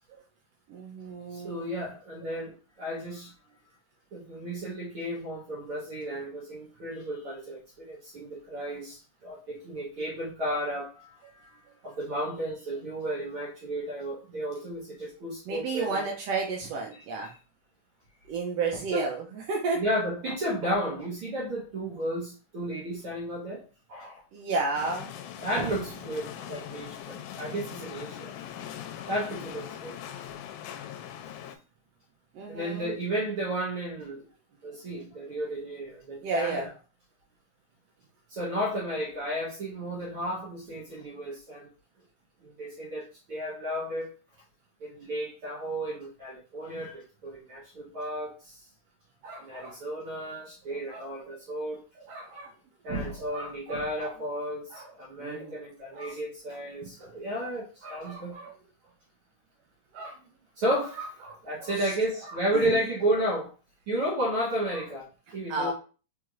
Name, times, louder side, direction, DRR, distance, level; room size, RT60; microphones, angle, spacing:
voice 1, 0.7-1.8 15.5-17.3 18.3-19.8 24.3-25.1 32.3-32.9 36.2-36.7 49.2-49.7 50.7-51.4 52.0-52.5 53.3-54.1 54.7-54.9 55.2-55.6 55.9-56.2 57.0-57.4 57.8-58.5 59.9-60.2 61.0-61.9 62.3-62.8 64.7-64.8 65.5-65.7, right 3 dB, 85° right, 1.4 m, -33 dB
voice 2, 1.3-3.6 4.1-16.1 18.9-19.1 19.7-24.2 25.4-28.4 29.1-30.0 30.2-30.3 32.5-34.2 34.6-36.7 38.3-41.7 42.4-44.1 44.8-48.7 49.4-51.8 52.8-58.4 60.6-61.0 61.4-63.5 63.9-65.7, right 1 dB, 60° right, 1.5 m, -33 dB
sound 1, 24.8-31.6, left 10 dB, 80° left, 2.0 m, -41 dB
4.7 x 4.2 x 2.5 m
omnidirectional pair, 3.6 m